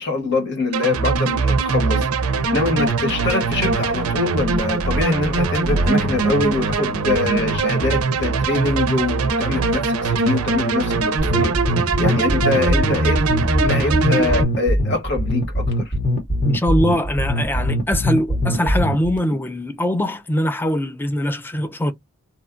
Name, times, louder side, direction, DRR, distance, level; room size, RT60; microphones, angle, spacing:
voice 1, 0.0-11.5 12.0-13.2 13.6-15.9, left 3 dB, 55° left, 1.1 m, -24 dB
sound 1, 0.7-14.4, right 3 dB, 85° right, 0.5 m, -21 dB
sound 2, 11.2-19.2, equal, 35° left, 0.8 m, -21 dB
voice 2, 16.4-21.9, equal, 10° left, 0.4 m, -22 dB
2.8 x 2.2 x 2.4 m
head